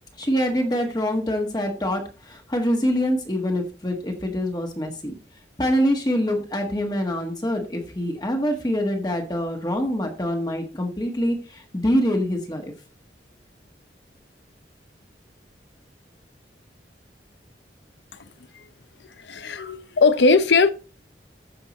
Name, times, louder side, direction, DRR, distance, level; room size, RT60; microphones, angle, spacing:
voice 1, 0.2-5.1 5.6-12.6, equal, 25° left, 1.5 m, -25 dB
voice 2, 19.2-20.7, left 4 dB, 85° left, 0.8 m, -19 dB
14.0 x 5.8 x 3.1 m
head